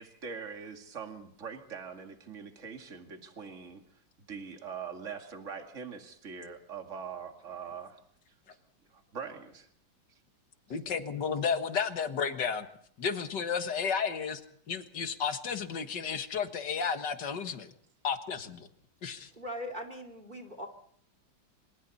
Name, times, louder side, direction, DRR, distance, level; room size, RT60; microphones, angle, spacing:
voice 1, 0.0-3.8 4.2-8.0 8.9-9.7, right 6 dB, 40° right, 4 dB, 2.4 m, -42 dB
voice 2, 10.7-12.7 13.0-14.4 14.7-17.7 18.0-18.7 19.0-19.3, left 6 dB, 60° left, 8 dB, 2.2 m, -32 dB
voice 3, 19.4-20.7, equal, 25° right, 7 dB, 3.0 m, -40 dB
26.5 x 26.5 x 4.2 m, 0.64 s
omnidirectional pair, 2.1 m